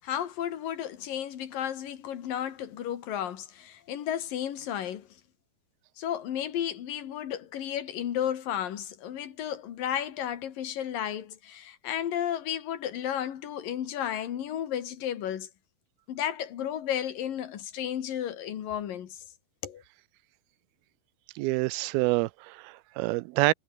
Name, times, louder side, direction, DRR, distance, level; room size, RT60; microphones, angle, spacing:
voice 1, 0.0-5.1 6.0-15.5 16.1-19.2 19.6-19.8, left 10 dB, 70° left, 3.5 m, -33 dB
voice 2, 21.4-23.5, right 21 dB, 90° right, 2.5 m, -27 dB
omnidirectional pair, 4.3 m